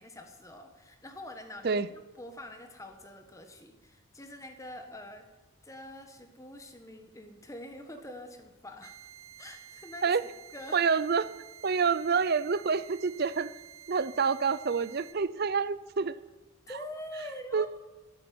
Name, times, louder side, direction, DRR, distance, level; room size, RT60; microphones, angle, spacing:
voice 1, 0.0-5.2 5.6-8.9 9.4-10.2 10.5-10.8 16.7-17.7, left 1 dB, 15° left, 6 dB, 1.4 m, -45 dB
sound 1, 8.8-15.1, right 10 dB, 70° right, 1.2 m, -51 dB
voice 2, 10.7-11.3 11.6-13.5 13.9-16.1 17.5-17.7, right 5 dB, 45° right, 15 dB, 0.5 m, -27 dB
14.0 x 8.5 x 9.4 m, 1.2 s
head